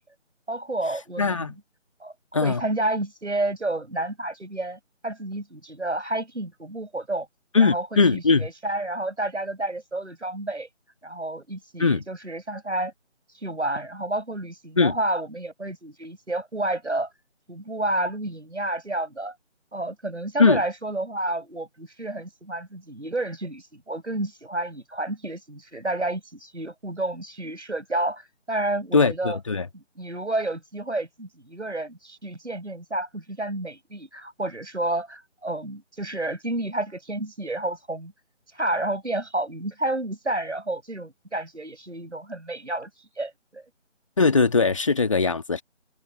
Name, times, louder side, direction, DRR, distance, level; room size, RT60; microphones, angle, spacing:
voice 1, 0.5-1.5 2.0-2.1 2.4-7.3 7.6-10.7 11.0-12.9 13.4-17.1 17.5-19.3 19.7-29.4 29.7-38.1 38.5-42.9 43.2-43.6, right 2 dB, 70° right, 7.9 m, -30 dB
voice 2, 1.2-1.5 2.3-2.6 7.5-8.5 11.8-12.0 14.8-15.0 20.4-20.6 28.9-29.7 44.2-45.6, left 4 dB, 25° left, 2.0 m, -20 dB
figure-of-eight pair, 160°, 36 cm